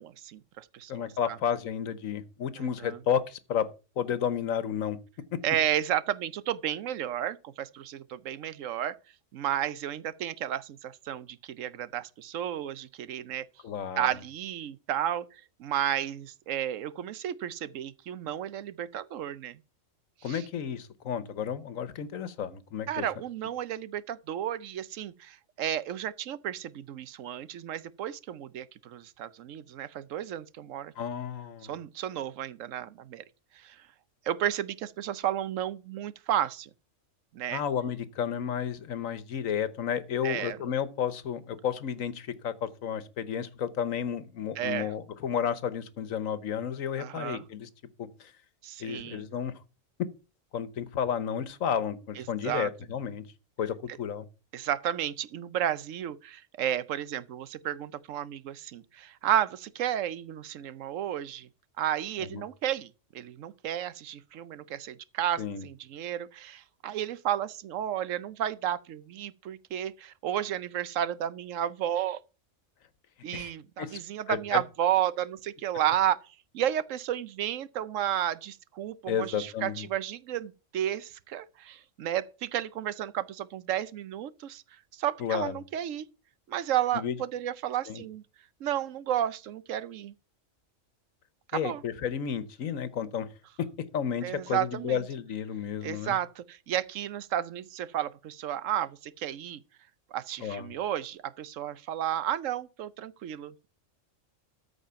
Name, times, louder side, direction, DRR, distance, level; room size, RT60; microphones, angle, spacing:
voice 1, 0.0-1.4 2.6-3.0 5.4-8.9 9.3-13.5 14.0-19.6 20.3-20.4 22.9-30.9 31.6-33.2 33.5-33.8 34.3-36.7 37.3-37.6 40.2-40.6 44.6-44.9 47.0-47.4 48.6-49.2 52.2-52.7 54.5-61.5 61.8-62.9 63.1-72.2 73.2-76.2 76.5-84.6 84.9-86.1 86.5-88.2 88.6-90.1 91.5-91.8 94.2-95.0 95.8-99.6 100.1-103.7, right 11 dB, 80° right, 1.0 m, -32 dB
voice 2, 0.9-3.7 4.0-5.0 5.3-5.4 13.6-14.1 20.2-23.1 31.0-31.7 37.5-47.7 48.0-48.3 48.8-49.5 50.5-53.2 53.6-54.2 62.3-62.4 65.4-65.6 73.3-73.5 73.8-74.0 74.3-74.6 79.1-79.9 85.2-85.6 86.9-87.2 87.9-88.0 91.5-93.3 93.6-93.7 93.9-96.2 100.4-100.7, left 8 dB, 90° left, 1.4 m, -32 dB
13.5 x 5.0 x 5.6 m
omnidirectional pair, 1.3 m